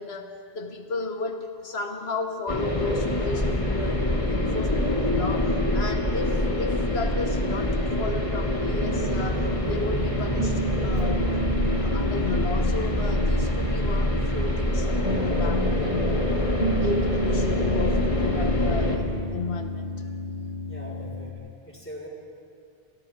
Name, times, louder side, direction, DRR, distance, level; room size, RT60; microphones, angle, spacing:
voice 1, 0.0-11.3 11.7-16.3 16.8-20.1, left 4 dB, 80° left, 5 dB, 1.3 m, -33 dB
sound 1, 2.5-19.0, left 1 dB, 30° left, 2.2 m, -25 dB
Piano, 8.8-21.3, equal, 45° right, 2.0 m, -30 dB
voice 2, 20.7-22.1, left 1 dB, 10° left, -5 dB, 4.6 m, -42 dB
29.5 x 27.5 x 3.6 m, 2.4 s
omnidirectional pair, 1.1 m